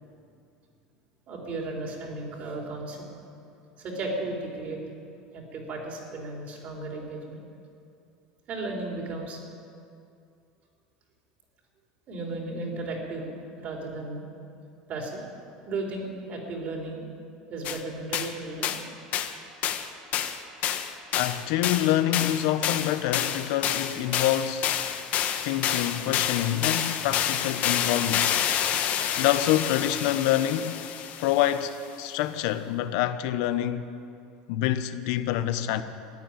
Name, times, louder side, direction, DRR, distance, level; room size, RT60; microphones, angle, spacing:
voice 1, 1.3-3.0 3.8-4.8 5.3-7.5 8.5-9.4 12.1-13.3 13.6-14.2 14.9-15.2 15.6-17.0 17.5-18.8, right 2 dB, 50° right, 4.4 m, -34 dB
sound 1, 17.6-17.8 18.1-18.3 18.6-18.8 19.1-19.3 19.6-19.9 20.1-31.6, left 9 dB, 50° left, 1.2 m, -28 dB
voice 2, 21.1-24.7 25.4-28.4 29.2-30.9 31.2-33.9 34.5-35.8, left 12 dB, 70° left, 0.9 m, -26 dB
14.5 x 10.5 x 9.1 m
supercardioid pair, 100°, 3 cm